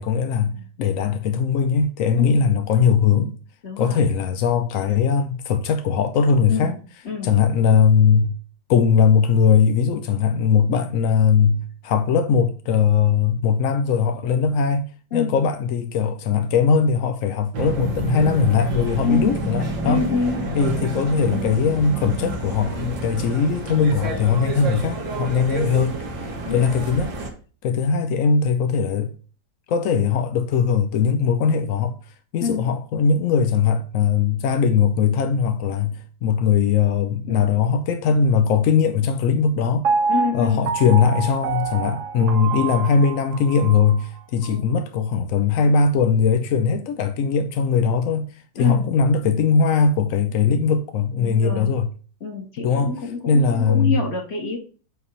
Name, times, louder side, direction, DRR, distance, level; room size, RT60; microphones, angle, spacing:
voice 1, 0.0-3.4 3.8-6.7 7.2-8.4 8.7-20.1 20.5-26.0 26.5-27.1 27.6-29.1 29.7-32.0 32.3-39.8 40.3-48.2 48.6-51.9 52.6-53.0 53.3-54.0, left 6 dB, 75° left, 0.7 m, -20 dB
voice 2, 3.6-4.0 6.5-6.8 7.0-7.3 15.1-15.4 19.0-19.3 19.8-20.4 26.4-26.7 32.4-32.7 37.3-37.5 40.1-40.7 44.5-44.7 48.6-48.9 51.2-51.7 52.2-54.6, left 5 dB, 35° left, 1.9 m, -26 dB
sound 1, 17.5-27.3, right 2 dB, 90° right, 2.1 m, -29 dB
Piano, 39.8-43.9 44.4-44.5, right 5 dB, 60° right, 0.9 m, -26 dB
8.0 x 2.9 x 5.5 m
omnidirectional pair, 2.0 m